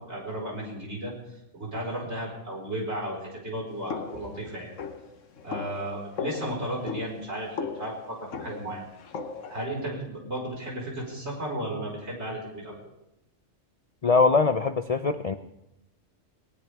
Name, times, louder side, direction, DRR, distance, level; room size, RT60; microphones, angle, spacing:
voice 1, 0.1-1.1 1.5-4.7 5.4-8.8 9.5-12.7, right 1 dB, 60° right, -2 dB, 5.3 m, -34 dB
sound 1, 3.9-9.6, left 5 dB, 80° left, 1.4 m, -37 dB
voice 2, 14.0-15.3, left 4 dB, 45° left, 10 dB, 0.5 m, -22 dB
20.5 x 19.0 x 3.5 m, 0.85 s
omnidirectional pair, 1.3 m